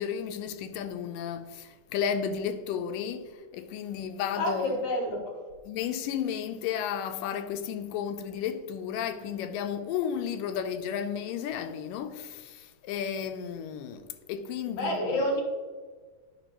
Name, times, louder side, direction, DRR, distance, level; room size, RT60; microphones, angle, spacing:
voice 1, 0.0-4.8 5.7-15.3, left 8 dB, 90° left, 2.2 m, -33 dB
voice 2, 4.3-5.4 14.8-15.4, left 1 dB, 65° left, 2.7 m, -29 dB
9.4 x 5.4 x 2.9 m
omnidirectional pair, 3.8 m